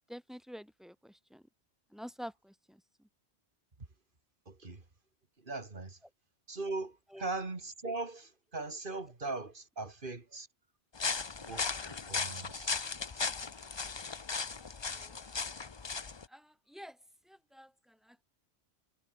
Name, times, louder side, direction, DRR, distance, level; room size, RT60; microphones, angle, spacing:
voice 1, 0.1-1.4 1.9-3.1 7.1-7.3 14.9-15.2 16.3-17.0 17.2-18.2, equal, ahead, 2.2 m, -49 dB
voice 2, 4.5-4.8 5.4-6.0 6.5-10.5 11.4-12.8, right 3 dB, 50° right, 2.5 m, -40 dB
sound 1, 11.0-16.3, left 5 dB, 30° left, 0.6 m, -37 dB
omnidirectional pair, 1.2 m